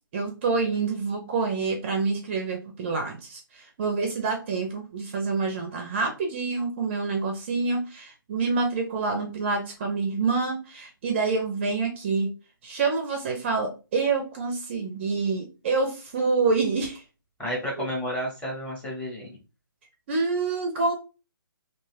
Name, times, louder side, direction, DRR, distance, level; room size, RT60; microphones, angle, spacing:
voice 1, 0.1-3.4 3.8-12.3 12.6-17.0 17.8-17.9 20.1-20.9, right 4 dB, 30° right, 3 dB, 0.6 m, -27 dB
voice 2, 17.4-19.4, equal, 10° left, -4 dB, 1.0 m, -31 dB
2.5 x 2.3 x 3.2 m, 0.30 s
figure-of-eight pair, 145°, 12 cm